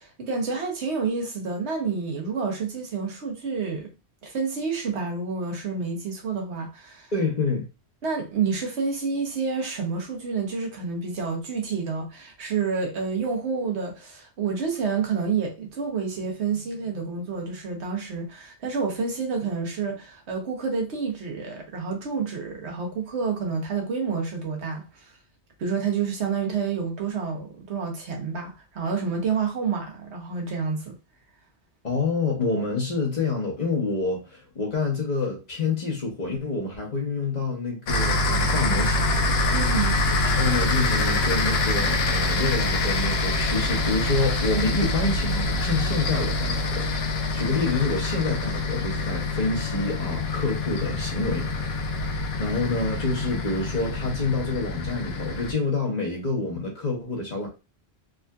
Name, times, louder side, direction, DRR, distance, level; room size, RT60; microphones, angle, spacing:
voice 1, 0.0-3.9 4.2-7.1 8.0-25.1 25.6-30.9 39.5-39.9, right 5 dB, 85° right, 1.2 m, -29 dB
voice 2, 7.1-7.7 31.8-39.2 40.2-51.5 51.8-57.5, left 3 dB, 40° left, 1.1 m, -27 dB
sound 1, 37.9-55.5, left 2 dB, 70° left, 0.9 m, -25 dB
3.6 x 2.5 x 2.2 m
omnidirectional pair, 1.1 m